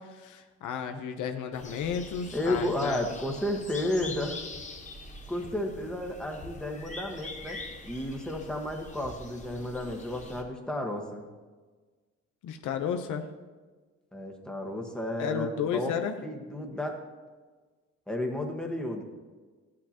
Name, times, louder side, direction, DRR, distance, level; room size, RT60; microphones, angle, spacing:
voice 1, 0.0-3.0 12.4-13.3 15.2-16.2, left 7 dB, 80° left, 6 dB, 0.8 m, -33 dB
sound 1, 1.5-10.4, left 2 dB, 25° left, 1.3 m, -44 dB
voice 2, 2.3-4.4 5.3-11.3 14.1-15.9 16.2-17.0 18.1-19.0, left 1 dB, 5° left, 1 dB, 1.4 m, -32 dB
13.0 x 8.7 x 2.9 m, 1.4 s
cardioid pair, 90°, 30 cm